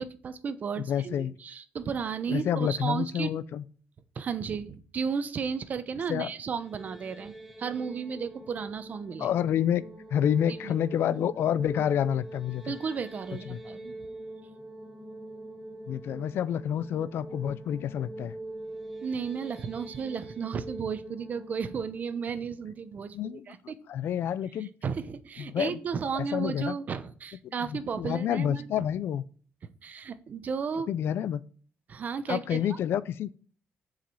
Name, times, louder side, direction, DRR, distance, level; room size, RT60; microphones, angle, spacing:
voice 1, 0.0-3.3 4.1-9.3 10.5-10.8 11.1-11.3 12.7-13.9 19.0-23.8 24.6-28.8 29.8-30.9 31.9-32.6, right 6 dB, 35° right, 0.8 m, -34 dB
voice 2, 0.9-1.3 2.3-3.6 6.1-6.3 9.2-9.8 10.1-12.7 13.5-13.6 15.9-18.3 23.1-24.7 25.4-25.8 26.1-26.7 27.4-29.2 30.9-31.4 32.3-33.3, left 9 dB, 60° left, 0.4 m, -29 dB
sound 1, 6.4-23.5, right 1 dB, 5° right, 1.5 m, -44 dB
7.4 x 4.9 x 6.9 m
cardioid pair, 170°, 5 cm